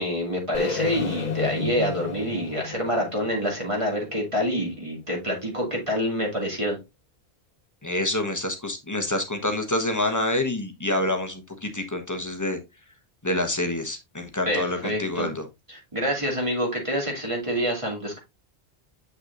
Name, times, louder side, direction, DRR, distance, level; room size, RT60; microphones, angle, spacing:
voice 1, 0.0-6.8 14.5-15.3 15.7-18.2, equal, 30° right, -1 dB, 2.5 m, -27 dB
sound 1, 0.5-4.6, left 5 dB, 45° left, 0.7 m, -33 dB
voice 2, 7.8-12.6 13.2-15.4, left 1 dB, 20° left, 5 dB, 1.1 m, -27 dB
7.7 x 5.9 x 2.6 m, 0.22 s
omnidirectional pair, 1.1 m